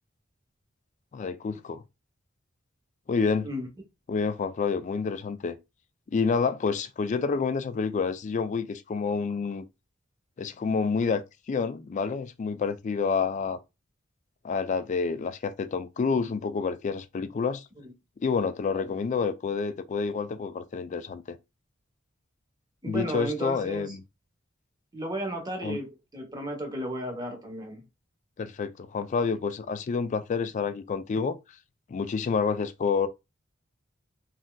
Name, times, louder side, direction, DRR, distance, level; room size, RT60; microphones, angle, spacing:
voice 1, 1.1-1.8 3.1-3.5 4.1-5.6 6.1-9.6 10.4-11.2 11.5-13.6 14.4-17.7 18.2-21.4 22.9-24.0 25.6-25.8 28.4-31.4 31.9-33.1, left 5 dB, 40° left, 0.3 m, -28 dB
voice 2, 22.8-24.0 24.9-27.8, right 1 dB, 20° right, 0.8 m, -34 dB
3.2 x 2.6 x 2.2 m
head